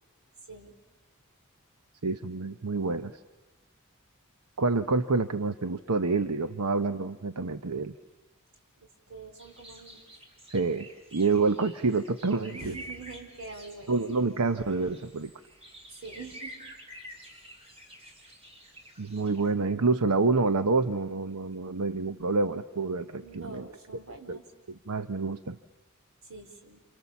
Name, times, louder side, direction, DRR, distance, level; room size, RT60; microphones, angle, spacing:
voice 1, 2.0-3.1 4.6-8.0 10.5-12.8 13.9-15.3 19.0-23.7 24.3-24.4 24.7-25.6, right 3 dB, 85° right, 10 dB, 0.9 m, -28 dB
voice 2, 9.1-10.1 12.5-13.9 15.9-16.6 23.2-24.4 26.2-26.8, right 3 dB, 65° right, 3 dB, 4.3 m, -45 dB
sound 1, 9.4-19.5, equal, 30° right, 4.0 m, -49 dB
29.5 x 29.0 x 7.1 m, 1.2 s
head